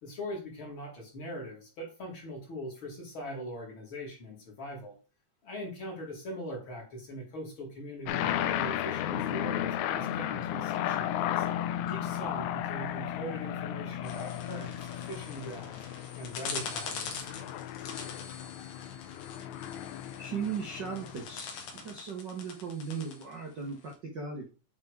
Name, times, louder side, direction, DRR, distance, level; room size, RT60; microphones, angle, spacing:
voice 1, 0.0-4.9 5.4-11.5 11.8-14.8 15.1-15.8 16.1-17.3, equal, 40° left, 0 dB, 2.4 m, -41 dB
sound 1, 8.1-21.8, left 11 dB, 85° left, 1.6 m, -34 dB
sound 2, 14.0-23.9, left 5 dB, 70° left, 2.9 m, -43 dB
voice 2, 20.2-21.5 21.7-24.5, right 6 dB, 75° right, 1 dB, 1.0 m, -37 dB
8.4 x 3.6 x 4.7 m, 0.34 s
omnidirectional pair, 4.0 m